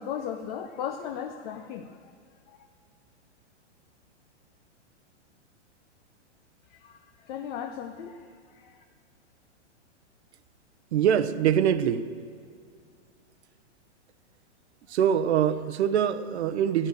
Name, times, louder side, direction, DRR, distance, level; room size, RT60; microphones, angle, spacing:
voice 1, 0.0-2.1 2.5-2.7 6.7-8.8, left 8 dB, 40° left, 6 dB, 0.8 m, -37 dB
voice 2, 10.9-12.1 14.9-16.9, right 9 dB, 70° right, 11 dB, 0.8 m, -24 dB
13.0 x 10.0 x 6.3 m, 2.2 s
hypercardioid pair, 135°, 35 cm